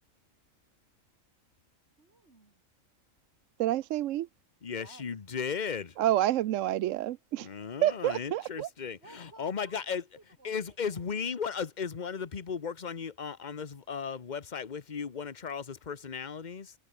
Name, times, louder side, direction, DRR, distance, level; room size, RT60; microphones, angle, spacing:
voice 1, 2.0-2.6 4.7-5.0 9.0-11.0, right 3 dB, 55° right, 2.7 m, -57 dB
voice 2, 3.6-4.3 6.0-7.5 7.8-8.7, right 13 dB, 75° right, 0.9 m, -28 dB
voice 3, 4.6-5.9 7.4-10.0 10.4-16.7, left 6 dB, 35° left, 1.2 m, -36 dB
omnidirectional pair, 1.4 m